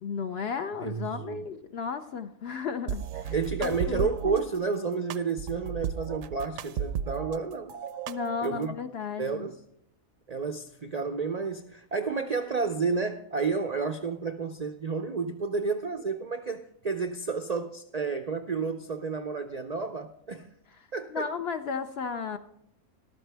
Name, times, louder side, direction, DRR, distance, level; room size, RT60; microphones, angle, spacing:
voice 1, 0.0-3.3 3.6-4.5 8.1-9.5 21.1-22.4, left 6 dB, 60° left, 0.7 m, -34 dB
voice 2, 0.8-1.4 3.3-7.7 8.4-8.7 9.2-9.6 10.3-20.5 20.9-21.3, right 4 dB, 55° right, 0.4 m, -31 dB
sound 1, 2.9-4.4 5.1-7.4 7.7-8.7, right 8 dB, 70° right, 0.9 m, -34 dB
14.0 x 12.5 x 3.4 m
omnidirectional pair, 1.5 m